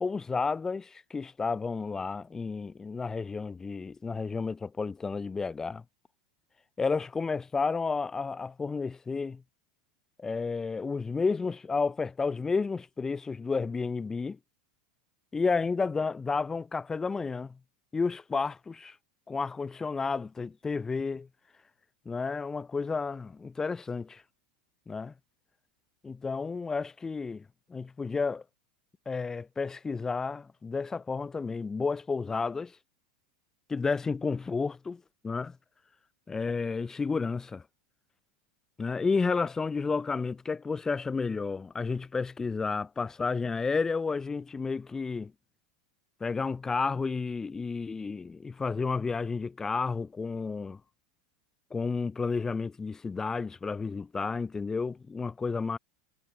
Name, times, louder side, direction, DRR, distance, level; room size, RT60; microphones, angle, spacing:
voice 1, 0.0-5.8 6.8-9.4 10.2-14.4 15.3-17.6 17.9-19.0 19.3-21.3 22.1-24.2 24.9-25.1 26.0-27.4 27.7-28.4 29.1-32.7 33.7-35.6 36.3-37.6 38.8-45.3 46.2-50.8 51.7-55.8, left 4 dB, 15° left, 0.3 m, -31 dB
hypercardioid pair, 95°, 3 cm